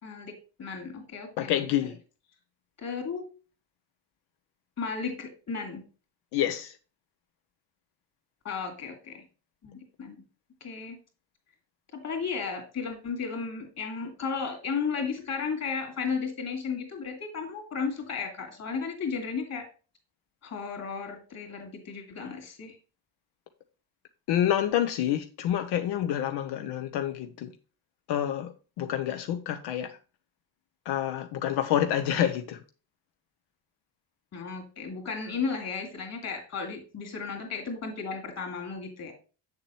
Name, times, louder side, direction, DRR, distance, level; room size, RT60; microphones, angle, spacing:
voice 1, 0.0-1.9 2.8-3.2 4.8-5.8 8.4-9.2 9.6-10.2 10.6-11.0 11.9-19.6 20.4-22.8 34.3-39.1, left 5 dB, 40° left, 2.9 m, -34 dB
voice 2, 1.4-2.0 6.3-6.8 24.3-27.5 28.1-30.0 30.9-32.6, left 11 dB, 85° left, 0.9 m, -28 dB
7.8 x 7.3 x 3.0 m
cardioid pair, 155°, 40 cm